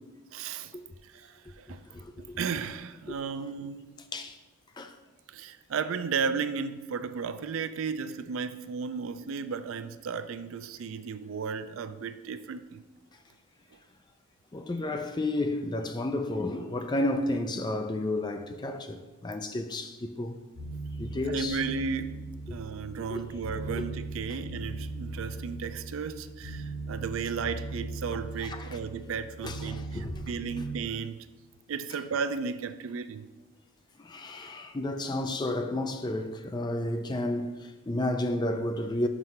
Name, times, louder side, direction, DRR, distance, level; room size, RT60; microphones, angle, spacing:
voice 1, 0.3-0.7 1.0-1.8 2.2-3.9 5.3-12.8 21.3-22.2 22.5-31.3 31.7-33.3, right 5 dB, 65° right, 0.4 m, -34 dB
voice 2, 1.9-2.4 3.1-3.2 4.1-4.4 4.8-4.9 14.5-20.3 21.0-21.6 23.1-23.2 23.8-23.9 28.4-28.8 29.4-30.3 34.0-39.1, left 1 dB, 20° left, 0.4 m, -32 dB
sound 1, 20.5-30.8, right 2 dB, 60° left, 1.9 m, -39 dB
6.0 x 4.7 x 5.4 m
head